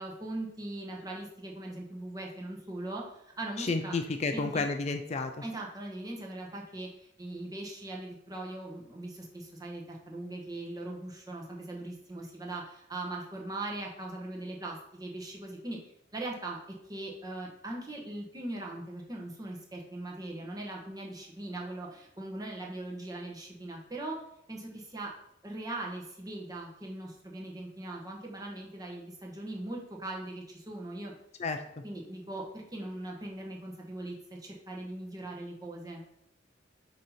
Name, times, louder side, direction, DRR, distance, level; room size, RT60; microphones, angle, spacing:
voice 1, 0.0-3.0 3.4-4.0 4.3-4.6 5.4-15.8 16.1-16.6 16.9-24.2 24.5-25.1 25.4-31.1 31.8-36.0, right 2 dB, 20° right, -1 dB, 1.1 m, -40 dB
voice 2, 3.6-5.3 31.4-31.6, left 3 dB, 35° left, 7 dB, 0.4 m, -31 dB
6.3 x 2.9 x 5.5 m, 0.75 s
head